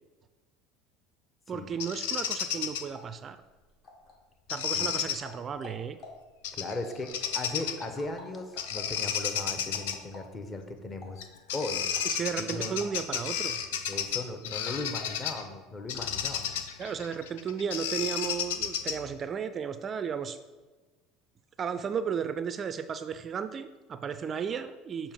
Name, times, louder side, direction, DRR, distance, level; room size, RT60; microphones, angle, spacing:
voice 1, 1.5-3.4 4.5-6.0 12.1-13.6 16.8-20.4 21.6-25.1, right 7 dB, 35° right, 11 dB, 0.3 m, -34 dB
Bird vocalization bird call bird song, 1.8-2.8 4.5-5.2 6.4-6.7 7.1-7.9 8.6-10.0 11.2-11.3 11.5-15.4 15.9-19.1, left 8 dB, 80° left, 0.5 m, -32 dB
sound 1, 2.9-16.2, left 3 dB, 50° left, 1.5 m, -52 dB
voice 2, 4.7-5.1 6.5-11.8 12.4-12.8 13.9-16.5, left 2 dB, 30° left, 6 dB, 0.9 m, -37 dB
6.8 x 2.9 x 5.1 m, 1.2 s
hypercardioid pair, 85°, 0 cm